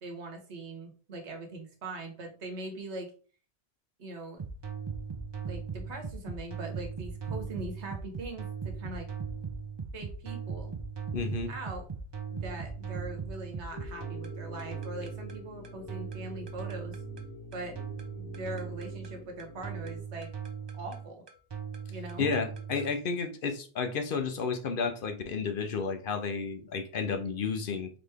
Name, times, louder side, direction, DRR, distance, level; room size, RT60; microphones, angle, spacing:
voice 1, 0.0-3.1 4.0-4.4 5.4-9.1 9.9-10.8 11.5-11.9 12.3-17.0 17.5-17.8 18.2-20.3 20.7-21.2 21.9-22.3, right 2 dB, 85° right, 1.3 m, -41 dB
sound 1, 4.4-22.9, right 6 dB, 45° right, 0.3 m, -39 dB
voice 2, 11.1-11.5 22.2-27.9, left 5 dB, 60° left, 0.7 m, -32 dB
sound 2, 13.7-20.0, left 4 dB, 75° left, 1.4 m, -48 dB
4.0 x 3.0 x 3.4 m
omnidirectional pair, 1.1 m